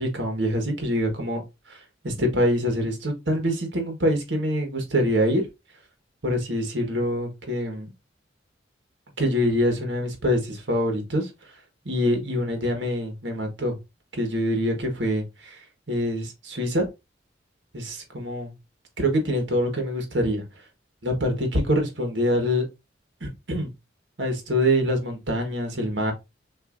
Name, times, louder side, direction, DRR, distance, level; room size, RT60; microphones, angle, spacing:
voice 1, 0.0-1.4 1.7-5.4 6.2-7.9 9.2-11.3 11.8-13.7 14.1-16.9 17.7-18.5 19.0-20.4 21.0-22.6 23.2-23.7 24.2-26.1, equal, 70° right, 1.5 m, -25 dB
6.5 x 2.8 x 2.6 m
head